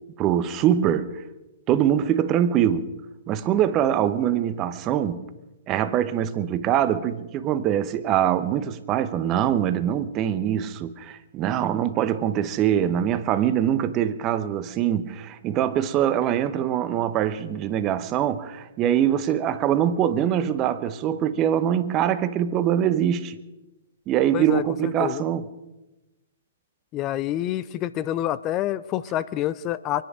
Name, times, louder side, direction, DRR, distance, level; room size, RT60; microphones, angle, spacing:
voice 1, 0.2-1.1 1.7-2.9 3.3-5.2 5.7-23.3 24.1-25.5, right 10 dB, 30° right, 1.0 m, -23 dB
voice 2, 24.3-25.2 26.9-30.0, left 13 dB, 30° left, 0.6 m, -27 dB
24.5 x 10.5 x 5.0 m
figure-of-eight pair, 120°, 0 cm